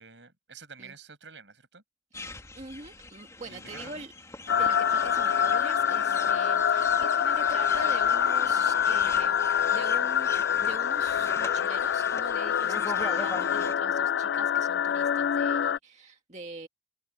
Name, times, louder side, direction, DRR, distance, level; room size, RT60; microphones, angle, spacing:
voice 1, 0.0-1.8 3.4-4.0, right 5 dB, 75° right, 6.3 m, -49 dB
sound 1, 2.1-13.7, left 2 dB, 15° left, 2.8 m, -42 dB
voice 2, 2.3-4.1 4.5-10.3 10.6-16.7, right 3 dB, 40° right, 1.7 m, -44 dB
sound 2, 4.5-15.8, left 8 dB, 65° left, 0.3 m, -25 dB
open air
head